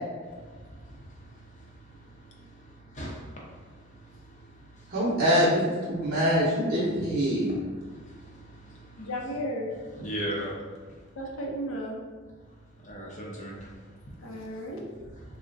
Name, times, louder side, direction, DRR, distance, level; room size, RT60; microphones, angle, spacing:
voice 1, 0.6-1.7 1.9-3.6 3.9-4.9 5.9-6.1 7.7-9.1 10.0-10.5 12.8-13.7, equal, 40° left, -4 dB, 0.7 m, -40 dB
voice 2, 4.9-5.6 5.9-7.6, equal, 50° right, -8 dB, 0.7 m, -24 dB
voice 3, 9.0-9.7 11.2-12.0 14.2-14.8, equal, 85° left, -1 dB, 0.6 m, -34 dB
3.5 x 2.1 x 2.5 m, 1.5 s
head